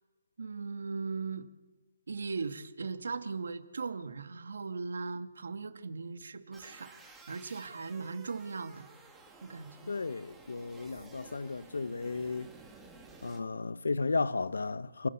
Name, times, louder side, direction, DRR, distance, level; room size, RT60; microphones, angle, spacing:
voice 1, 0.4-1.5 2.1-7.0 7.3-8.9 9.4-9.9, right 4 dB, 65° right, 2.1 m, -38 dB
sound 1, 6.5-13.4, right 3 dB, 5° right, 1.9 m, -54 dB
voice 2, 9.9-12.5 13.2-15.1, left 3 dB, 90° left, 1.2 m, -34 dB
29.0 x 17.5 x 7.2 m
hypercardioid pair, 175°, 0 cm